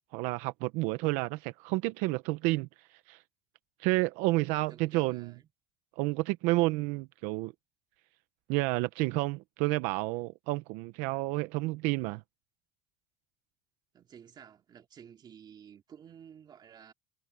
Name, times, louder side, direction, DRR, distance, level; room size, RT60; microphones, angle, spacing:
voice 1, 0.1-3.2 3.8-5.3 6.0-7.5 8.5-12.2, right 21 dB, 75° right, 0.8 m, -30 dB
voice 2, 4.5-5.5 13.9-16.9, right 8 dB, 35° right, 2.4 m, -52 dB
cardioid pair, 125°, 13 cm